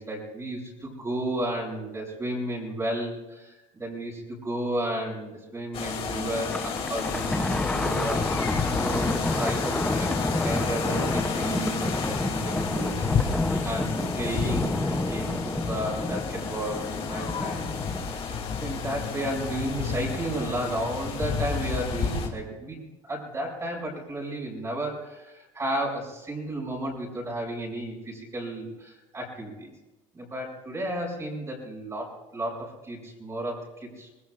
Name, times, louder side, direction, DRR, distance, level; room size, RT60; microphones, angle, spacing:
voice 1, 0.0-10.2 10.4-13.3 13.6-17.8 18.1-29.7 30.1-34.1, right 1 dB, 20° right, -4 dB, 6.2 m, -33 dB
sound 1, 5.7-22.3, left 5 dB, 40° left, 3.0 m, -31 dB
Thunder, 6.4-18.1, left 2 dB, 5° left, 0.8 m, -30 dB
26.0 x 20.0 x 2.6 m, 1.1 s
cardioid pair, 130°, 14 cm